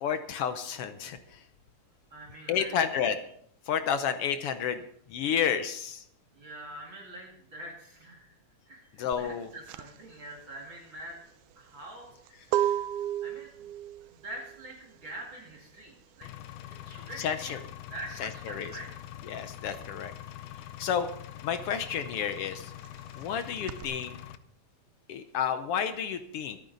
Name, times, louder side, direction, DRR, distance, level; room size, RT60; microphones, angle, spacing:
voice 1, 0.0-1.4 2.5-3.2 3.7-4.8 5.1-6.0 9.0-9.5 17.2-17.6 18.2-18.7 19.3-20.1 20.8-21.1 21.4-22.7 23.2-24.1 25.1-26.6, left 8 dB, 75° left, 10 dB, 1.4 m, -30 dB
voice 2, 2.1-2.7 6.3-8.4 8.7-12.2 13.2-13.5 14.1-16.3 16.8-17.5 17.9-18.9, right 1 dB, 40° right, -1 dB, 2.6 m, -45 dB
sound 1, 9.1-19.4 19.6-23.8, right 12 dB, 85° right, 2.1 m, -35 dB
Engine, 16.2-24.4, left 12 dB, 90° left, 2.2 m, -44 dB
23.0 x 9.2 x 4.0 m, 0.66 s
omnidirectional pair, 3.5 m